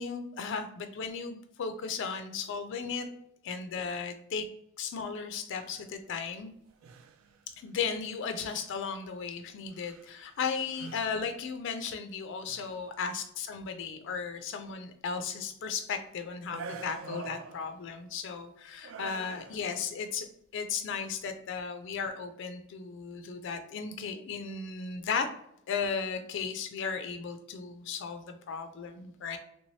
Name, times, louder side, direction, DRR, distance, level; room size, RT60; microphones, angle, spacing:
voice 1, 0.0-3.1 3.4-4.5 4.8-6.5 7.6-25.3 25.7-29.4, left 5 dB, 60° left, 8 dB, 0.3 m, -35 dB
sound 1, 5.6-5.9 6.7-7.4 8.1-8.2 8.5-8.8 9.7-10.4 10.7-11.4 12.3-12.8 16.5-18.0 18.8-19.9, right 5 dB, 70° right, 0.3 m, -46 dB
3.2 x 3.1 x 2.6 m, 0.76 s
head